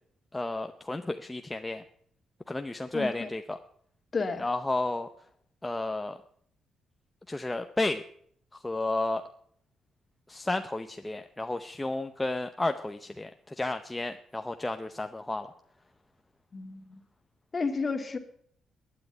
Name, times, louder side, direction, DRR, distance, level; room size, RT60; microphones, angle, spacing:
voice 1, 0.3-1.8 2.5-3.6 4.4-5.1 5.6-6.2 7.3-8.0 8.5-9.2 10.3-15.5, left 2 dB, 15° left, 7 dB, 0.7 m, -32 dB
voice 2, 2.9-3.3 4.1-4.4 16.5-17.0 17.5-18.2, left 4 dB, 35° left, 8 dB, 1.9 m, -31 dB
11.5 x 9.7 x 9.7 m, 0.65 s
cardioid pair, 90°, 0 cm